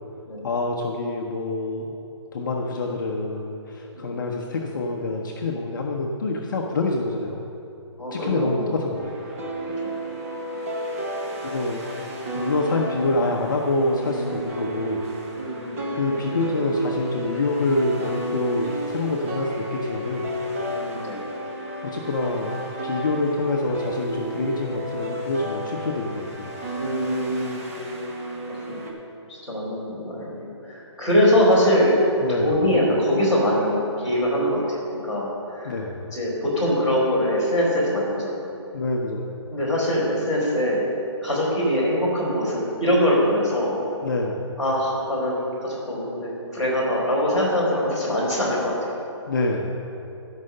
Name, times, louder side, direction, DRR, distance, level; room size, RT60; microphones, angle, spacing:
voice 1, 0.4-2.0 2.3-7.4 8.1-9.1 11.4-11.8 12.3-15.1 15.9-20.3 21.8-22.5 22.8-26.5 32.2-32.6 35.6-36.1 38.7-39.3 44.0-44.5 49.3-49.8, left 2 dB, 40° left, 0 dB, 0.8 m, -26 dB
voice 2, 8.0-8.6 9.8-9.9 15.3-16.2 20.7-21.2 26.8-27.6 28.5-28.8 29.3-32.0 32.3-35.8 36.1-38.4 39.5-40.8 41.2-43.8 44.6-48.9, equal, 5° right, -11 dB, 2.8 m, -23 dB
sound 1, 8.9-28.9, right 1 dB, 30° right, 1.2 m, -32 dB
13.5 x 5.6 x 6.5 m, 2.9 s
hypercardioid pair, 170°, 15 cm